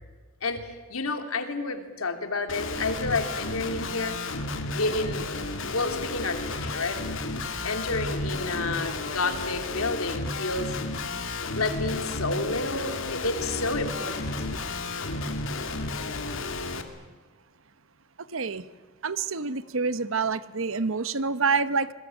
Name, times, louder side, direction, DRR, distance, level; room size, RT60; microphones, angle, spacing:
voice 1, 0.4-4.2 4.8-5.3 5.7-7.0 7.6-10.7 11.5-14.3, left 3 dB, 85° left, 2.9 m, -30 dB
Guitar, 2.5-16.8, left 2 dB, 65° left, 2.4 m, -32 dB
voice 2, 18.3-18.7 19.0-21.9, right 4 dB, 70° right, 1.0 m, -27 dB
26.5 x 21.5 x 9.0 m
head